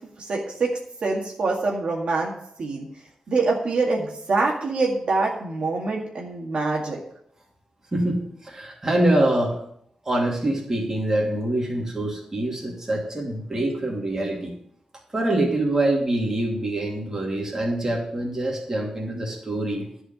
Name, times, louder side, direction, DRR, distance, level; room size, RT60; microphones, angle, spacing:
voice 1, 0.2-2.3 2.6-2.9 3.3-7.0, right 3 dB, 65° right, -1 dB, 1.9 m, -25 dB
voice 2, 7.9-9.5 10.0-14.5 15.1-19.8, right 1 dB, 25° right, -2 dB, 2.8 m, -25 dB
11.5 x 4.9 x 7.7 m, 0.69 s
wide cardioid pair, 140°, 2 cm